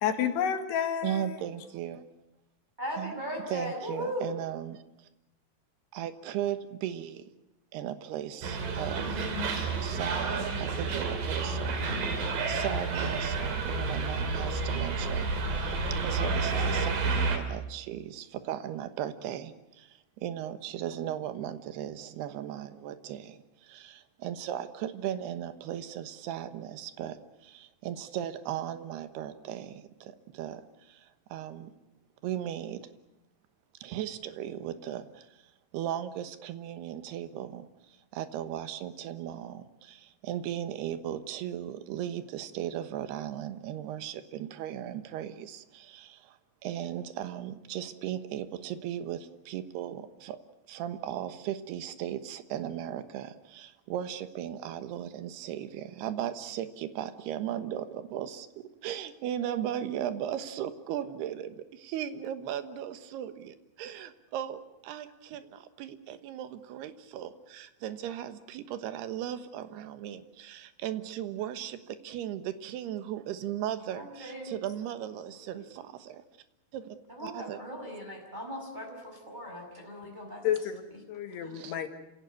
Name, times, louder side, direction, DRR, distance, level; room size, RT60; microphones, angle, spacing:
voice 1, 0.0-1.4 80.4-80.8 81.1-81.9, left 9 dB, 80° left, 6 dB, 4.0 m, -30 dB
voice 2, 1.0-2.0 3.0-3.1 3.4-4.8 5.9-7.3 7.7-31.7 32.2-32.9 33.8-50.4 50.7-58.5 58.8-76.2 76.7-77.6 81.5-81.7, right 11 dB, 80° right, 11 dB, 3.2 m, -37 dB
voice 3, 2.8-4.3 73.9-74.5 75.5-75.6 77.1-80.4 81.4-81.6, equal, 10° right, 0 dB, 5.4 m, -38 dB
sound 1, 8.4-17.4, right 4 dB, 60° right, 4.2 m, -30 dB
28.0 x 17.0 x 9.5 m, 0.93 s
omnidirectional pair, 4.8 m